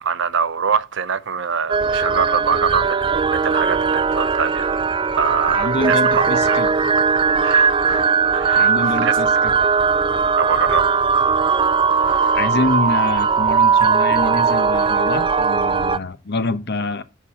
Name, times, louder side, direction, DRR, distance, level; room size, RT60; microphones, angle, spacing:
voice 1, 0.0-4.8 5.2-6.6 7.4-8.1 8.3-9.6 10.4-11.1 11.9-12.4, right 6 dB, 65° right, 0.7 m, -24 dB
sound 1, 1.7-16.0, right 5 dB, 25° right, 0.4 m, -18 dB
voice 2, 5.5-6.7 8.5-9.5 12.3-17.0, left 2 dB, 55° left, 0.9 m, -25 dB
11.5 x 4.1 x 7.1 m
head